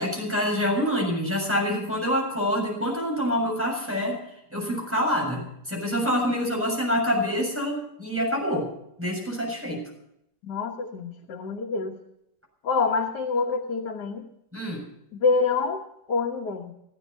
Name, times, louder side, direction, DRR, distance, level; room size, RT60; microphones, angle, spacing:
voice 1, 0.0-4.2 4.5-8.7 9.0-9.8 14.5-14.9, equal, 5° right, -2 dB, 7.1 m, -26 dB
voice 2, 10.4-12.0 12.6-14.3 15.1-15.8 16.1-16.7, left 4 dB, 85° left, 2 dB, 1.8 m, -26 dB
17.0 x 15.0 x 5.5 m, 0.79 s
omnidirectional pair, 1.7 m